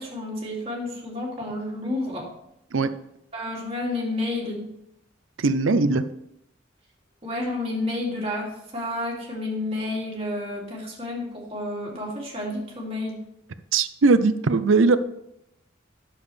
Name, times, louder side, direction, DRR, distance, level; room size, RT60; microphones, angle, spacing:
voice 1, 0.0-2.3 3.3-4.7 7.2-13.2, left 2 dB, 30° right, -4 dB, 2.6 m, -30 dB
voice 2, 5.4-6.0 13.7-15.0, right 3 dB, 90° right, 12 dB, 0.6 m, -19 dB
11.0 x 7.1 x 3.4 m, 0.80 s
head